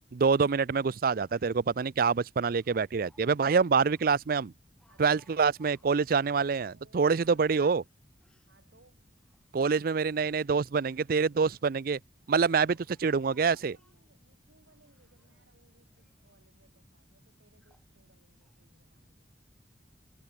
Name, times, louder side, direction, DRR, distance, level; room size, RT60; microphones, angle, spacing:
voice 1, 0.1-4.5 5.0-7.8 9.5-12.0 12.3-12.8 13.0-13.8, right 5 dB, 55° right, 0.5 m, -26 dB
Speech, 1.3-1.8 2.6-6.5 6.9-8.6 9.1-9.9 10.8-11.4 12.1-14.1 14.7-15.5 15.9-16.4 17.0-17.1 17.6-17.9 18.4-18.6, left 1 dB, 5° left, 7.4 m, -70 dB
voice 2, 4.9-5.3 6.6-7.5 8.5-9.1 13.5-19.4, right 2 dB, 75° right, 7.9 m, -65 dB
head